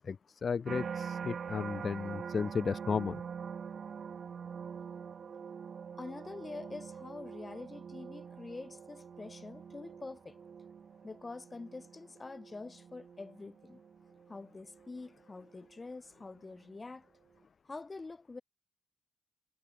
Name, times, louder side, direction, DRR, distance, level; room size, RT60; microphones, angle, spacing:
voice 1, 0.0-3.2, left 6 dB, 35° left, 0.6 m, -34 dB
sound 1, 0.6-15.8 16.4-16.8, right 7 dB, 45° right, 1.8 m, -45 dB
voice 2, 6.0-10.4 11.0-13.8 14.3-17.1 17.6-18.4, left 3 dB, 20° left, 5.0 m, -46 dB
cardioid pair, 145°, 0 cm